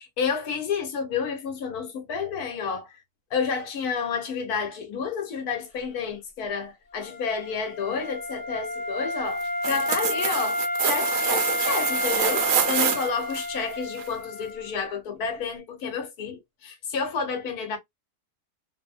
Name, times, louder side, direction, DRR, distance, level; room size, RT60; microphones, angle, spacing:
voice 1, 0.2-3.0 3.3-17.8, left 5 dB, 70° left, 1.4 m, -30 dB
Wind instrument woodwind instrument, 6.9-14.7, left 1 dB, 30° left, 0.9 m, -30 dB
sound 1, 9.4-13.4 14.0-14.1, right 8 dB, 65° right, 0.9 m, -26 dB
3.0 x 2.1 x 2.4 m
omnidirectional pair, 1.7 m